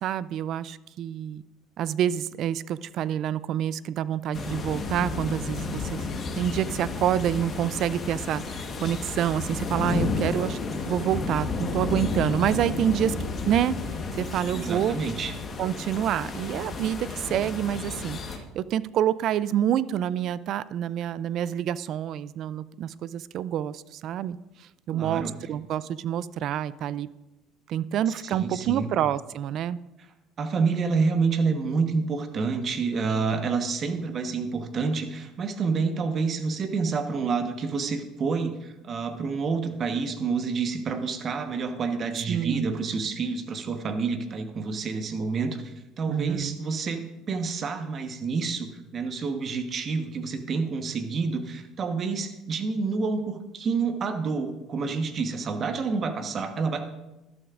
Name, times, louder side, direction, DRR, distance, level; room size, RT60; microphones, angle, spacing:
voice 1, 0.0-1.4 1.8-10.6 10.9-15.0 15.6-24.4 24.9-27.1 27.7-29.8 42.3-42.7 46.1-46.6, right 10 dB, 60° right, 18 dB, 0.3 m, -27 dB
sound 1, 4.3-18.4, left 4 dB, 35° left, 1.3 m, -32 dB
voice 2, 14.5-15.3 24.9-25.3 28.3-28.9 30.4-56.9, right 4 dB, 40° right, 7 dB, 1.1 m, -28 dB
12.0 x 11.5 x 2.5 m, 0.98 s
supercardioid pair, 105°, 0 cm